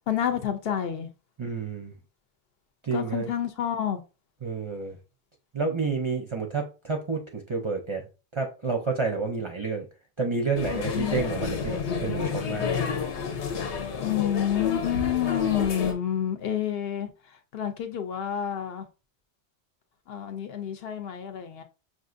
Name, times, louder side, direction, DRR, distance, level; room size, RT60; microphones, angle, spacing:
voice 1, 0.1-1.1 2.9-4.0 10.7-11.2 14.0-17.1 17.5-18.9 20.1-21.6, left 10 dB, 65° left, 0.8 m, -29 dB
voice 2, 1.4-1.9 2.8-3.3 4.4-5.0 5.5-8.1 8.3-9.9 10.2-13.1, right 4 dB, 35° right, 0.5 m, -30 dB
sound 1, 10.6-15.9, left 6 dB, 90° left, 1.0 m, -30 dB
5.9 x 2.5 x 2.5 m
omnidirectional pair, 1.1 m